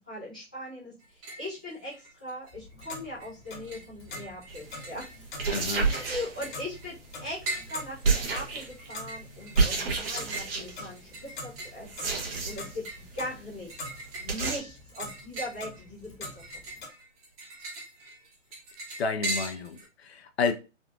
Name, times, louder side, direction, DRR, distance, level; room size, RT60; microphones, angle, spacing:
voice 1, 0.1-5.1 5.8-11.9 12.4-13.8 14.2-16.1, left 1 dB, 5° left, 0.3 m, -40 dB
sound 1, 1.0-1.5 1.8-2.5 2.8-19.9, right 2 dB, 30° right, 1.3 m, -41 dB
Clock, 2.5-16.9, left 2 dB, 40° left, 1.1 m, -45 dB
sound 2, 4.5-4.7 5.3-6.8 8.0-8.9 9.5-10.9 11.9-12.8 13.1-13.2 13.5-13.6 13.8-13.9 14.3-14.6, right 4 dB, 50° right, 1.1 m, -29 dB
voice 2, 5.5-5.9 19.0-20.5, left 5 dB, 55° left, 0.6 m, -30 dB
3.6 x 2.4 x 2.4 m
hypercardioid pair, 140°, 38 cm